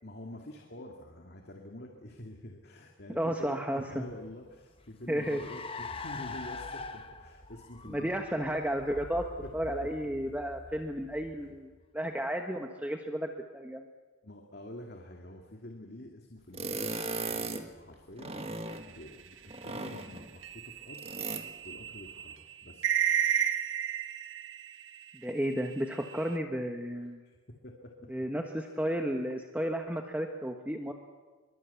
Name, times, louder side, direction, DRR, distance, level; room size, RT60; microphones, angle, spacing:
voice 1, 0.0-8.1 9.4-9.5 9.8-9.9 10.2-10.3 11.4-11.5 14.2-17.0 17.3-18.5 18.9-21.2 21.6-23.0 27.0-28.0 28.6-28.8, left 1 dB, 50° left, 2 dB, 2.4 m, -47 dB
voice 2, 3.1-4.1 5.1-5.4 7.8-9.2 9.5-13.8 25.1-27.2 28.1-30.9, equal, 5° right, 4 dB, 1.3 m, -33 dB
Car, 4.1-11.9, left 3 dB, 25° left, 1.1 m, -44 dB
sound 1, 16.5-17.7 18.1-18.9 19.5-20.3 20.9-21.5, right 3 dB, 30° right, 1.6 m, -37 dB
sound 2, 18.8-25.1 25.5-26.4, right 9 dB, 65° right, 1.4 m, -33 dB
24.5 x 23.5 x 8.4 m, 1.3 s
head